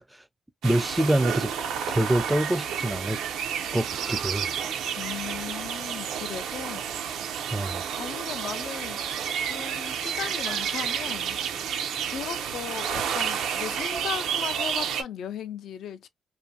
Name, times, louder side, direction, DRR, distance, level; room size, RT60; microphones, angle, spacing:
voice 1, 0.6-1.5 1.9-3.2 3.7-4.6 7.5-7.8, right 1 dB, 5° right, 0.3 m, -25 dB
sound 1, 0.6-15.0, right 8 dB, 85° right, 0.4 m, -30 dB
voice 2, 5.0-7.3 8.0-9.0 9.5-11.4 12.0-16.1, left 9 dB, 75° left, 0.4 m, -37 dB
2.6 x 2.4 x 2.6 m
cardioid pair, 90°, 0 cm